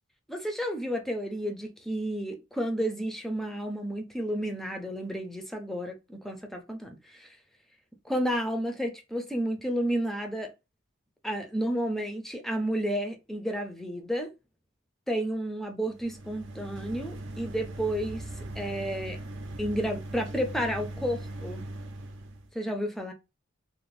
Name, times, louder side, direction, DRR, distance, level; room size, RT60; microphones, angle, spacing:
voice 1, 0.3-7.3 8.1-10.5 11.2-14.3 15.1-18.2 18.6-19.2 19.6-21.6 22.5-23.1, equal, ahead, 0.4 m, -31 dB
sound 1, 15.9-22.5, right 1 dB, 65° right, 0.5 m, -40 dB
2.5 x 2.0 x 3.1 m
head